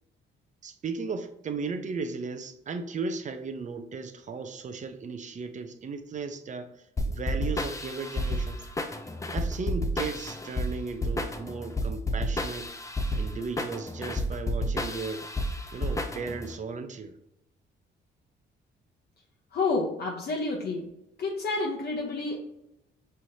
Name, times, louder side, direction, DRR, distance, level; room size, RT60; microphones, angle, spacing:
voice 1, 0.6-6.7 7.1-8.7 9.3-12.7 13.1-15.3 15.7-17.2, right 4 dB, 40° right, 8 dB, 0.5 m, -36 dB
sound 1, 7.0-16.5, left 1 dB, 15° left, 0.5 m, -31 dB
voice 2, 19.5-20.9 21.2-22.4, left 3 dB, 55° left, -2 dB, 0.8 m, -29 dB
5.6 x 3.2 x 2.7 m, 0.81 s
cardioid pair, 90°, 20 cm